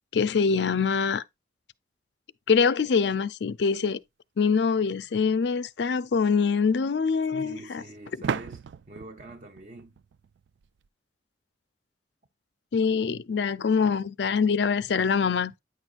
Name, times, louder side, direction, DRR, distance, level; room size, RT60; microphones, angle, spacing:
voice 1, 0.1-1.2 2.5-4.0 4.4-7.8 12.7-15.5, left 5 dB, 65° left, 0.4 m, -24 dB
sound 1, 5.2-5.3 8.2-10.9, right 6 dB, 70° right, 0.3 m, -36 dB
voice 2, 7.3-10.0, right 2 dB, 40° right, 0.8 m, -44 dB
9.4 x 6.2 x 2.5 m
head